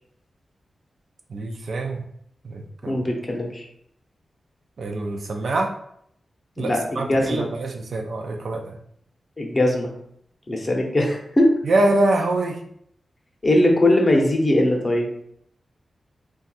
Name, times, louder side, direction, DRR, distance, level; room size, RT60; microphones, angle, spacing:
voice 1, 1.3-2.0 2.4-3.0 4.8-5.7 6.6-8.8 11.6-12.6, right 2 dB, 65° right, 3 dB, 0.4 m, -24 dB
voice 2, 2.8-3.6 6.6-7.5 9.4-9.9 10.5-11.5 13.4-15.1, left 1 dB, 30° left, 0 dB, 0.7 m, -20 dB
2.6 x 2.3 x 4.0 m, 0.70 s
wide cardioid pair, 130°, 0 cm